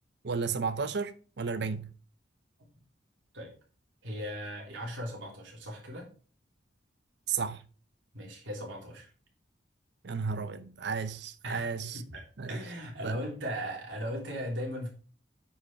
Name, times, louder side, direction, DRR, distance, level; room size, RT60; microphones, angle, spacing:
voice 1, 0.2-1.9 7.3-7.7 10.0-12.0 12.4-12.6 13.0-13.2, right 5 dB, 65° right, 0.7 m, -33 dB
voice 2, 4.0-6.1 8.1-9.1 11.4-14.9, equal, 85° right, 3.3 m, -38 dB
9.0 x 5.3 x 4.4 m
head